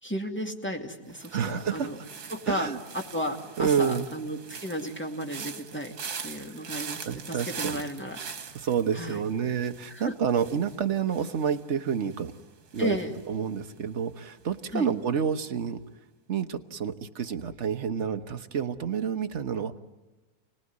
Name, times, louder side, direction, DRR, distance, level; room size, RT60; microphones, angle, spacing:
voice 1, 0.0-2.0 2.3-5.9 6.2-8.6 8.9-9.2 9.9-10.1 12.8-13.1 14.7-14.9, equal, 5° left, 2 dB, 2.2 m, -34 dB
sound 1, 1.1-14.1 14.4-14.8, right 6 dB, 85° right, 2.0 m, -43 dB
voice 2, 1.3-1.9 2.5-2.8 3.6-4.1 7.0-7.8 8.5-12.3 12.7-13.0 13.2-15.8 16.3-19.8, right 7 dB, 50° right, 7 dB, 1.3 m, -29 dB
29.0 x 19.0 x 9.6 m, 1.2 s
omnidirectional pair, 1.6 m